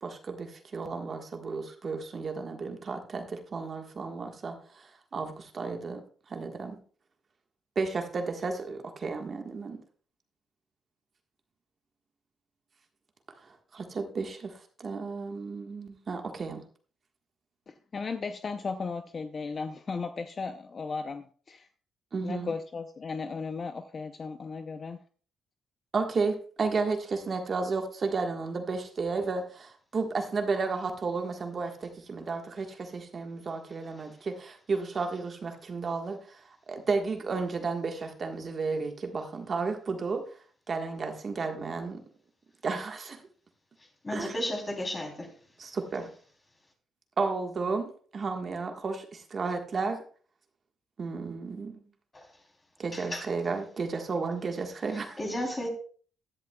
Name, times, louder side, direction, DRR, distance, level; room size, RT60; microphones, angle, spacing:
voice 1, 0.0-6.0 6.3-6.8 7.7-9.8 13.4-16.6 22.1-22.5 25.9-40.2 40.7-42.0 42.6-43.2 44.1-44.3 45.6-46.1 47.2-50.0 51.0-51.8 52.8-55.2, right 4 dB, 40° right, 1.5 m, -33 dB
voice 2, 17.7-21.7 22.2-25.0, left 4 dB, 40° left, 0.6 m, -36 dB
voice 3, 44.0-45.3 52.1-52.3 52.9-53.2 55.2-55.7, left 1 dB, 25° left, 3.3 m, -33 dB
15.5 x 10.5 x 2.3 m
cardioid pair, 90°, 0 cm